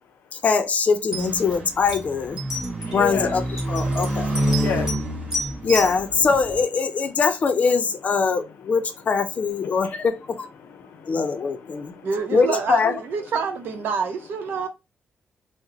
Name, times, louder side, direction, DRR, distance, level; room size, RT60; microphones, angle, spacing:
voice 1, 0.3-2.4 2.9-3.4 3.7-4.3 5.6-10.5 11.1-11.9 12.3-12.9, left 5 dB, 40° left, 0.5 m, -22 dB
sound 1, 0.8-0.9 1.1-1.6 1.9-2.0 2.4-3.0 3.6-5.0 5.3-5.9, equal, 15° right, 1.3 m, -30 dB
sound 2, 1.1-6.6, right 1 dB, 35° right, 1.0 m, -28 dB
voice 2, 2.5-3.4 3.9-5.7 8.2-8.8 9.3-10.1 10.6-12.2 13.7-14.7, left 7 dB, 85° left, 0.6 m, -36 dB
voice 3, 12.0-14.7, right 5 dB, 80° right, 0.7 m, -27 dB
2.9 x 2.1 x 3.8 m
wide cardioid pair, 140°, 4 cm